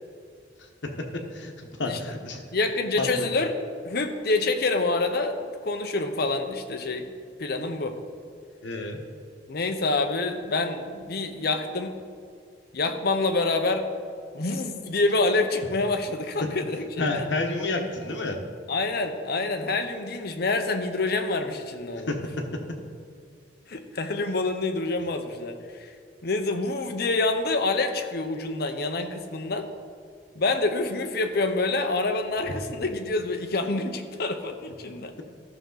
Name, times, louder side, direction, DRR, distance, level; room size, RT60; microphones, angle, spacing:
voice 1, 0.8-2.4 3.0-3.1 8.6-9.0 17.0-18.4 22.1-22.6 32.5-32.6, left 2 dB, 85° left, 4 dB, 1.2 m, -30 dB
voice 2, 2.5-3.5 3.8-7.1 7.4-8.0 9.5-11.9 12.7-13.9 14.3-17.3 18.7-22.1 23.7-25.9 26.2-29.7 30.3-35.1, left 3 dB, 60° left, 6 dB, 0.8 m, -27 dB
14.0 x 6.2 x 4.0 m, 2.2 s
head